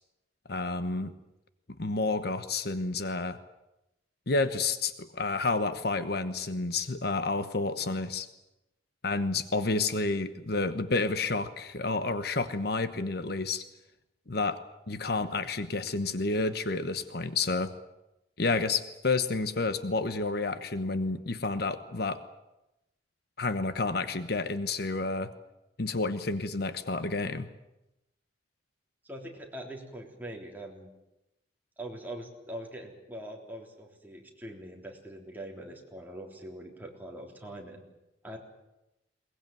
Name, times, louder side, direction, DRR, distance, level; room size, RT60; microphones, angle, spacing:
voice 1, 0.5-1.1 1.8-3.4 4.3-8.3 9.0-13.6 14.3-14.6 14.9-17.7 18.4-22.2 23.4-25.3 25.8-27.5, left 3 dB, 60° left, 11 dB, 1.1 m, -30 dB
voice 2, 29.0-30.9 31.8-37.8 38.2-38.4, right 1 dB, 10° right, 0 dB, 3.6 m, -43 dB
22.0 x 20.5 x 9.2 m, 0.93 s
head